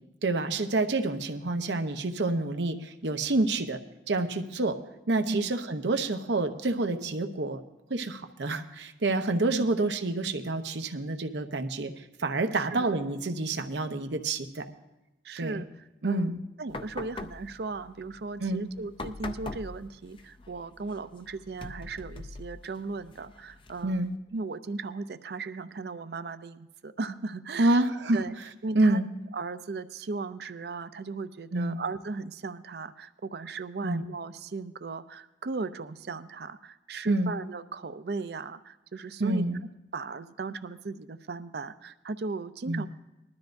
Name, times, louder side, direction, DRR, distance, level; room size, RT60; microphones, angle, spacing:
voice 1, 0.2-3.8 4.1-4.8 5.1-7.6 7.9-11.9 12.2-14.6 15.4-15.6 16.0-16.4 18.4-18.6 23.8-24.1 27.6-28.2 28.7-29.1 31.5-31.8 33.8-34.0 37.1-37.3 39.2-39.6 42.7-42.9, right 2 dB, 85° right, 7 dB, 0.8 m, -28 dB
voice 2, 12.5-12.9 15.2-24.0 24.3-27.8 28.1-28.3 28.6-29.0 29.3-39.5 39.9-42.9, right 3 dB, 65° right, 12 dB, 0.5 m, -37 dB
sound 1, 16.7-24.2, left 2 dB, 30° left, 0.5 m, -44 dB
20.0 x 12.5 x 2.6 m, 0.96 s
head